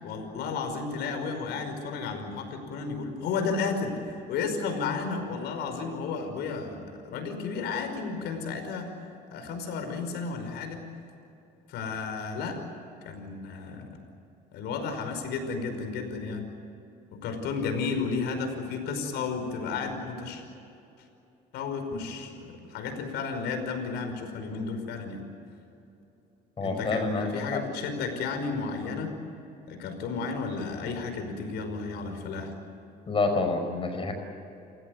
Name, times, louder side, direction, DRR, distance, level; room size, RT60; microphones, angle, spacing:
voice 1, 0.0-8.9 9.3-10.9 11.7-12.6 13.0-13.9 14.5-16.4 17.1-20.4 21.5-25.2 26.6-29.1 29.7-32.5, left 4 dB, 80° left, 6 dB, 5.4 m, -33 dB
voice 2, 26.6-27.6 33.1-34.1, left 3 dB, 30° left, 5 dB, 5.3 m, -28 dB
29.5 x 16.5 x 9.7 m, 2.8 s
cardioid pair, 110°, 17 cm